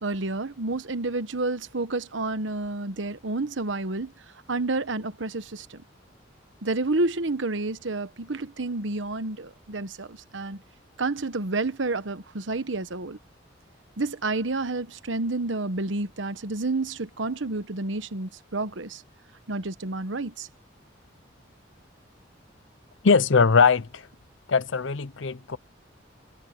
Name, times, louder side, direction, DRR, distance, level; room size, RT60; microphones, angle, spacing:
voice 1, 0.0-4.1 4.5-5.8 6.6-10.6 11.0-13.2 14.0-19.0 19.5-20.5, right 2 dB, 75° right, 1.2 m, -29 dB
voice 2, 23.0-24.0 24.5-25.6, left 5 dB, 80° left, 0.7 m, -20 dB
head